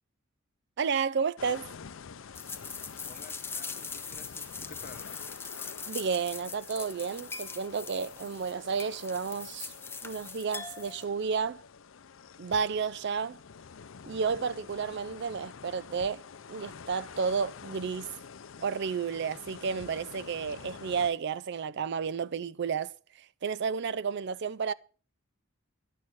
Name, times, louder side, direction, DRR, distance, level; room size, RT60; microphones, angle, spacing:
voice 1, 0.8-1.7 5.9-9.7 10.0-11.6 12.4-13.4 14.1-16.2 16.5-18.1 18.6-22.9 23.4-24.7, right 6 dB, 55° right, 0.4 m, -31 dB
sound 1, 1.4-21.1, left 6 dB, 70° left, 0.5 m, -48 dB
sound 2, 2.3-11.0, left 5 dB, 10° left, 0.7 m, -42 dB
voice 2, 3.0-5.1, left 4 dB, 45° left, 0.9 m, -51 dB
11.0 x 8.5 x 6.1 m
head